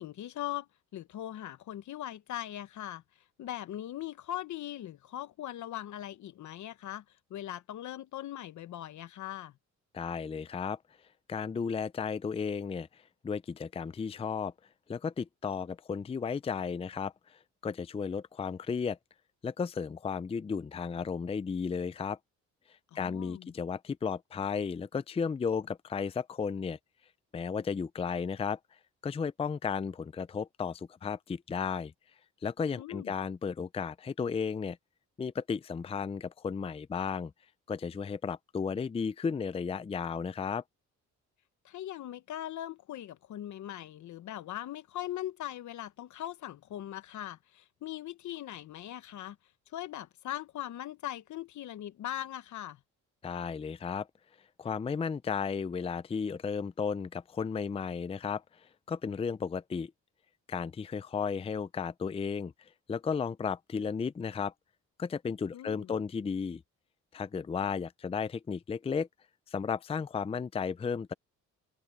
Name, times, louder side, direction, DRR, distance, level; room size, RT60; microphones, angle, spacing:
voice 1, 0.0-3.0 3.4-7.0 7.3-9.6 22.9-23.5 32.8-33.1 41.6-49.4 49.7-52.8 65.5-65.9, left 13 dB, 70° left, 1.1 m, -40 dB
voice 2, 9.9-10.8 11.3-14.5 14.9-19.0 19.4-22.2 22.9-26.8 27.3-28.6 29.0-31.9 32.4-34.8 35.2-37.3 37.7-40.6 53.2-54.1 54.6-59.9 60.5-64.5 65.0-66.6 67.1-69.1 69.5-71.1, left 6 dB, 20° left, 0.5 m, -34 dB
cardioid pair, 90°, 30 cm